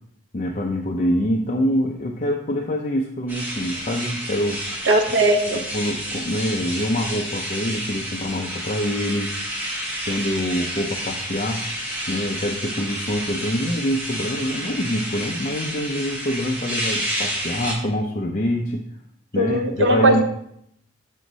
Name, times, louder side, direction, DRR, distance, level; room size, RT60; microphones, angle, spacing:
voice 1, 0.3-4.6 5.5-9.3 10.1-18.9 19.3-20.2, equal, 40° left, 0 dB, 0.6 m, -25 dB
sound 1, 3.3-17.7, equal, 10° right, 1.7 m, -30 dB
voice 2, 4.9-5.6 19.4-20.2, right 1 dB, 75° right, 1 dB, 1.0 m, -18 dB
6.4 x 6.2 x 4.0 m, 0.71 s
head